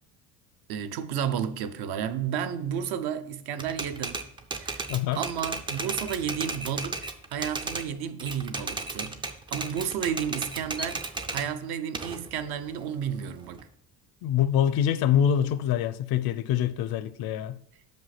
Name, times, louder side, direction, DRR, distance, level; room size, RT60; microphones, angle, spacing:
voice 1, 0.7-4.2 4.5-4.9 5.2-13.6, right 8 dB, 65° right, 0.7 m, -32 dB
Typewriter, 3.6-7.9 8.2-11.5 11.9-13.6, right 3 dB, 15° right, 0.3 m, -34 dB
voice 2, 4.9-5.2 14.2-17.6, left 9 dB, 60° left, 0.6 m, -25 dB
5.8 x 5.4 x 5.8 m
cardioid pair, 150°, 41 cm